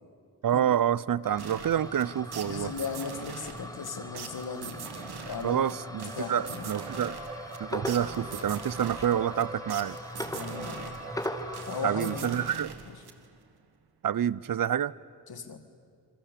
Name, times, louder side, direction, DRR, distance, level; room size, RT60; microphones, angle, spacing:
voice 1, 0.4-2.7 5.4-7.2 7.6-10.0 11.8-12.7 14.0-14.9, right 10 dB, 60° right, 21 dB, 0.7 m, -28 dB
sound 1, 1.2-12.5, equal, 10° left, 3.0 m, -40 dB
sound 2, 1.4-13.5, right 7 dB, 80° right, 1.7 m, -44 dB
voice 2, 2.4-5.6 6.0-6.7 10.3-11.0 11.7-13.0 15.3-15.6, left 5 dB, 70° left, 8 dB, 2.3 m, -38 dB
sound 3, 3.6-12.2, right 1 dB, 15° right, 4.8 m, -45 dB
28.0 x 22.5 x 8.5 m, 2.1 s
supercardioid pair, 45°, 38 cm